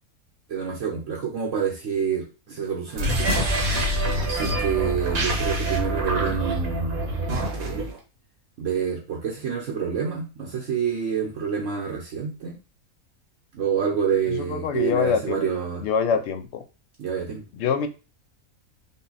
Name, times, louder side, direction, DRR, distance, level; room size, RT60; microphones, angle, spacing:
voice 1, 0.5-3.3 4.2-7.0 7.5-7.9 8.6-12.6 13.5-15.8 17.0-17.4, right 7 dB, 65° right, -1 dB, 1.2 m, -27 dB
sound 1, 2.9-8.0, right 1 dB, 85° right, 1.8 m, -25 dB
voice 2, 14.3-15.5 15.8-16.6 17.5-17.9, left 7 dB, 60° left, 8 dB, 0.8 m, -25 dB
5.5 x 2.3 x 4.0 m, 0.32 s
omnidirectional pair, 1.5 m